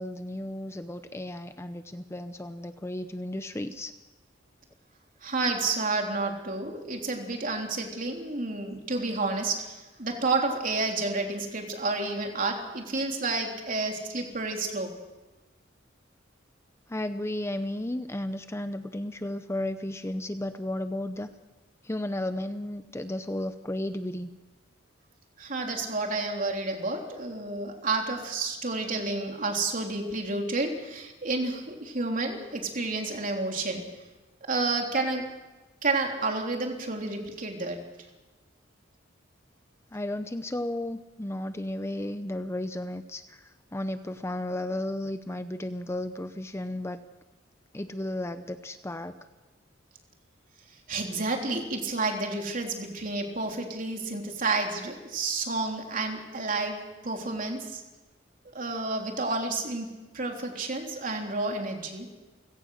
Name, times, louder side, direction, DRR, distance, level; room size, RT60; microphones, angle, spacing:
voice 1, 0.0-3.9 16.9-21.3 21.8-24.3 39.9-47.0 47.7-49.1, left 1 dB, 15° left, 10 dB, 0.7 m, -34 dB
voice 2, 5.2-14.9 25.4-33.8 34.5-35.3 35.8-37.9 50.9-57.8 58.5-62.1, right 3 dB, 45° right, 2 dB, 3.5 m, -30 dB
29.0 x 17.0 x 6.5 m, 1.2 s
head